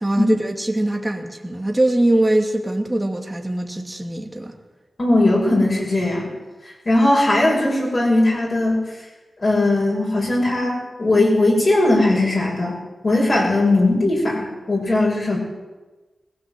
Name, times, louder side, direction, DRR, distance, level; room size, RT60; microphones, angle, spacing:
voice 1, 0.0-4.6, right 1 dB, 15° right, 2.5 m, -22 dB
voice 2, 5.0-6.3 6.7-8.8 9.4-12.8 13.0-15.4, left 2 dB, 45° left, 6.9 m, -18 dB
21.0 x 16.5 x 7.9 m
wide cardioid pair, 100°, 0 cm